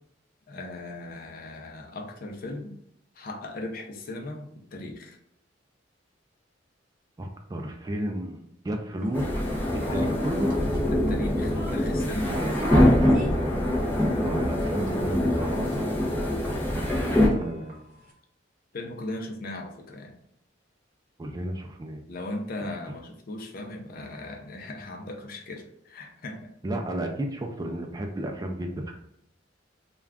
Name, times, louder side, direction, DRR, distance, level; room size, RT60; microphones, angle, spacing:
voice 1, 0.5-2.8 3.1-5.2 9.9-10.1 10.9-12.4 18.7-20.1 22.1-26.5, left 2 dB, 50° left, 2 dB, 0.5 m, -37 dB
voice 2, 7.2-9.5 9.7-10.5 12.3-12.6 14.0-15.9 16.5-17.8 21.2-22.0 26.6-28.9, right 1 dB, 20° right, 3 dB, 0.3 m, -33 dB
sound 1, 9.0-18.1, right 1 dB, 45° right, 0.8 m, -43 dB
sound 2, 9.1-17.3, left 1 dB, 10° left, 0.6 m, -24 dB
2.4 x 2.2 x 3.4 m, 0.73 s
head